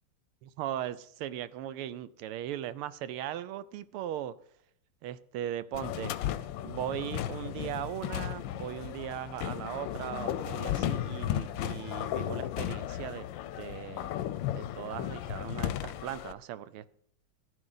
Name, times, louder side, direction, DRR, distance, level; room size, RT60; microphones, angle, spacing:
voice 1, 0.4-4.3 5.0-6.1 6.6-13.3 13.6-14.2 14.5-16.9, right 12 dB, 90° right, 15 dB, 1.5 m, -38 dB
sound 1, 5.7-16.3, left 11 dB, 75° left, 1.2 m, -35 dB
14.5 x 9.9 x 4.0 m, 0.68 s
omnidirectional pair, 2.3 m